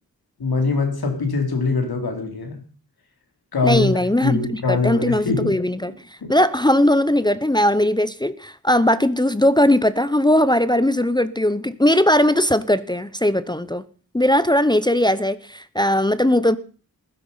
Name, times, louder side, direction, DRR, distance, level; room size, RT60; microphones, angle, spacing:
voice 1, 0.4-2.6 3.5-5.6 6.2-6.3, left 4 dB, 85° left, 3.8 m, -23 dB
voice 2, 3.6-5.9 6.3-13.8 14.1-16.6, left 1 dB, 10° left, 0.8 m, -19 dB
15.5 x 12.0 x 5.6 m
cardioid pair, 60°, 36 cm